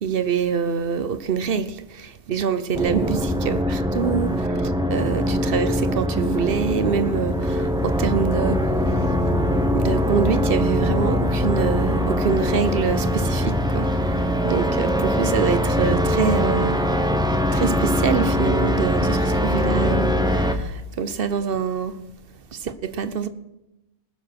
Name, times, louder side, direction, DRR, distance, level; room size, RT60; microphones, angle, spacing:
voice 1, 0.0-9.1 9.7-16.8 17.5-22.0 22.5-23.3, right 6 dB, 55° right, 1.0 m, -25 dB
sound 1, 2.7-20.5, equal, 5° right, 0.8 m, -22 dB
19.0 x 7.2 x 6.0 m
omnidirectional pair, 1.2 m